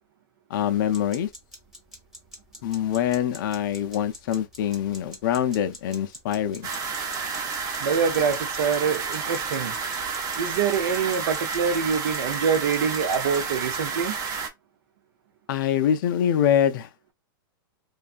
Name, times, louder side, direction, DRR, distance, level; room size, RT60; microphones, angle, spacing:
voice 1, 0.5-1.3 2.6-6.7 15.5-16.9, left 9 dB, 60° left, 0.5 m, -24 dB
sound 1, 0.9-13.8, left 1 dB, 5° right, 0.9 m, -45 dB
sound 2, 6.6-14.5, right 5 dB, 30° right, 0.6 m, -30 dB
voice 2, 7.8-9.7 10.4-14.2, right 6 dB, 70° right, 0.6 m, -25 dB
2.6 x 2.3 x 2.4 m
hypercardioid pair, 135°, 12 cm